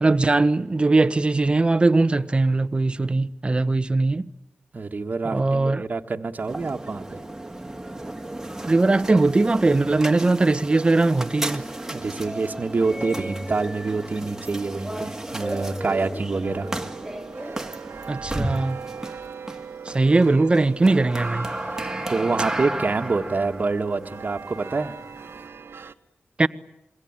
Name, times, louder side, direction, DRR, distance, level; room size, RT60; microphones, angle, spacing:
voice 1, 0.0-4.3 5.2-5.8 8.6-11.6 18.1-18.8 19.8-21.5 26.4-26.5, right 2 dB, 25° right, 1.2 m, -20 dB
voice 2, 4.7-7.2 11.9-16.7 22.1-25.0, right 3 dB, 40° right, 1.8 m, -26 dB
sound 1, 6.4-25.5, right 1 dB, 10° right, 2.1 m, -34 dB
sound 2, 16.4-25.9, right 6 dB, 65° right, 1.5 m, -39 dB
27.0 x 23.0 x 9.0 m
wide cardioid pair, 135°, 4 cm